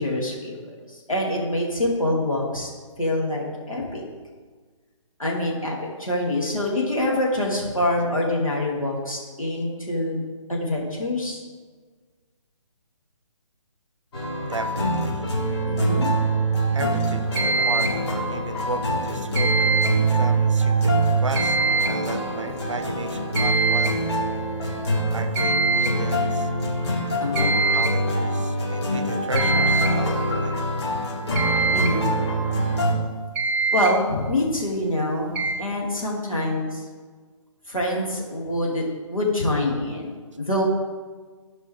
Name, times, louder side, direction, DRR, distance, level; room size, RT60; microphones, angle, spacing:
voice 1, 0.0-2.7 3.0-4.0 5.2-10.2 10.5-11.4 15.6-16.1 22.5-22.6 27.2-27.6 31.7-32.2 33.7-36.8 37.7-40.6, left 1 dB, 90° left, -3 dB, 3.1 m, -25 dB
sound 1, 14.1-32.9, right 1 dB, 55° left, 3.1 m, -24 dB
voice 2, 14.4-15.3 16.7-19.8 20.1-21.0 21.2-24.0 25.1-26.5 27.7-30.6, right 4 dB, 65° right, 10 dB, 0.9 m, -34 dB
sound 2, 17.4-18.1 19.3-20.1 21.4-22.1 23.4-24.0 25.4-26.0 27.4-28.0 29.4-30.0 31.4-32.0 33.0-33.1 33.4-33.9 35.4-35.5, right 4 dB, 10° right, 0.7 m, -23 dB
15.5 x 5.3 x 3.6 m, 1.5 s
figure-of-eight pair, 145°, 17 cm